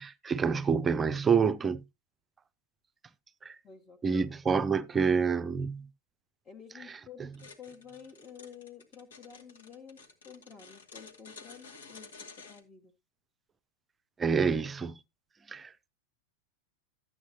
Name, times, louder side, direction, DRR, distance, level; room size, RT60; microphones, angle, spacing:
voice 1, 0.0-1.8 3.4-3.6 4.0-5.9 14.2-15.0 15.5-15.9, right 5 dB, 15° right, 0.5 m, -27 dB
voice 2, 3.6-4.3 6.4-12.9, left 7 dB, 20° left, 1.2 m, -51 dB
sound 1, 7.3-12.6, left 4 dB, 65° left, 1.7 m, -51 dB
12.5 x 8.3 x 2.8 m
figure-of-eight pair, 90°, 0 cm